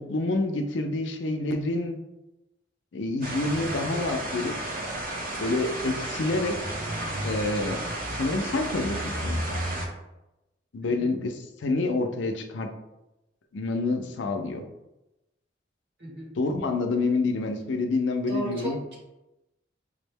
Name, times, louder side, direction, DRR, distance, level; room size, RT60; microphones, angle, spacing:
voice 1, 0.0-2.0 2.9-4.5 5.4-6.8 7.2-7.8 8.1-9.6 10.7-12.7 13.5-14.6 16.4-18.8, left 2 dB, 80° left, 5 dB, 0.5 m, -28 dB
sound 1, 3.2-9.9, right 1 dB, 50° right, 0.7 m, -32 dB
voice 2, 10.8-11.1 16.0-16.3 18.3-19.0, right 2 dB, 75° right, -4 dB, 1.5 m, -35 dB
5.0 x 2.1 x 3.4 m, 0.95 s
head